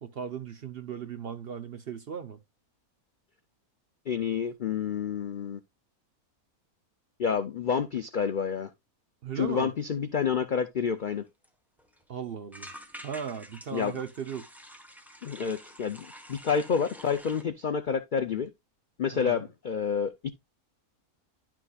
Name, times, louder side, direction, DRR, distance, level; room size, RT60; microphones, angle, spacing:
voice 1, 0.0-2.4 9.2-9.7 12.1-12.7 13.0-14.5 19.1-19.4, right 7 dB, 55° right, 0.7 m, -37 dB
voice 2, 4.1-5.6 7.2-8.7 9.4-11.2 13.7-14.0 15.2-18.5 19.0-20.3, left 6 dB, 70° left, 0.4 m, -29 dB
sound 1, 11.1-11.2 11.4-11.5 11.8-12.0 12.5-17.4, equal, ahead, 0.9 m, -48 dB
11.0 x 6.0 x 2.3 m
omnidirectional pair, 1.6 m